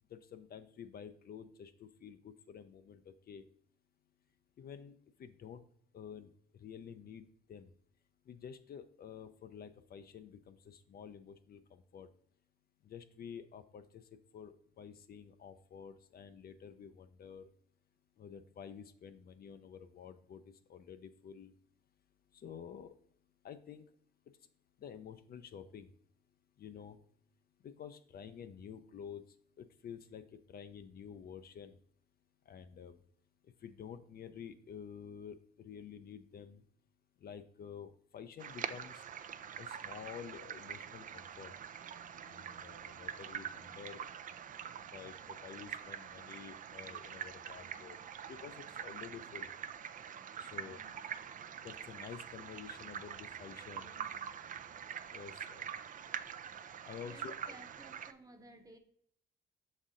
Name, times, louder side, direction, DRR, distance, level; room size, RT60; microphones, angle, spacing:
voice 1, 0.1-3.4 4.6-4.9 5.2-5.6 5.9-6.3 6.6-7.7 8.3-12.1 12.9-14.0 14.3-17.5 18.2-20.4 20.7-21.5 22.3-22.9 23.4-23.8 24.8-25.9 26.6-27.0 27.6-29.2 29.6-30.2 30.5-31.8 32.5-33.0 33.6-36.6 37.2-38.9 39.6-41.5 42.2-44.0 44.9-48.0 48.3-49.5 50.4-50.9 51.6-53.9 55.1-55.7 56.9-57.5, left 7 dB, 50° left, 10 dB, 0.5 m, -50 dB
sound 1, 38.4-58.1, right 8 dB, 45° right, 0.4 m, -45 dB
voice 2, 47.6-47.9 50.5-51.0 53.7-54.4 57.0-58.8, right 2 dB, 15° right, 5 dB, 0.9 m, -58 dB
6.0 x 4.1 x 3.7 m, 0.66 s
cardioid pair, 90°, 20 cm